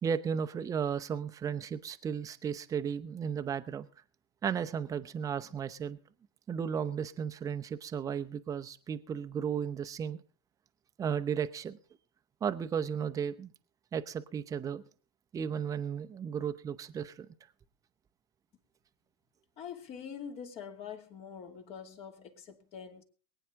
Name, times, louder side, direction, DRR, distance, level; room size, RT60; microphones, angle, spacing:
voice 1, 0.0-3.9 4.4-6.0 6.5-10.2 11.0-11.8 12.4-13.5 13.9-14.8 15.3-17.3, right 7 dB, 20° right, 0.9 m, -34 dB
voice 2, 19.6-23.0, left 7 dB, 40° left, 2.3 m, -44 dB
23.0 x 9.2 x 3.7 m
hypercardioid pair, 100°, 15 cm